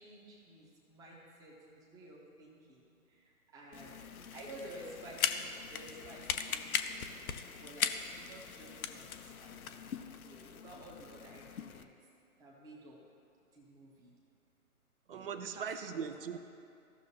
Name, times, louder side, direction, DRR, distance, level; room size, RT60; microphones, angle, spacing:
voice 1, 0.0-4.0 4.3-7.1 7.6-7.9 8.3-9.7 10.2-11.9 12.4-13.0 13.5-14.1 15.1-16.1, right 1 dB, 10° right, -3 dB, 1.0 m, -52 dB
sound 1, 3.7-11.8, left 7 dB, 70° left, 0.7 m, -39 dB
voice 2, 15.1-16.4, right 7 dB, 40° right, 9 dB, 0.6 m, -40 dB
15.5 x 6.3 x 2.8 m, 2.5 s
figure-of-eight pair, 140°, 44 cm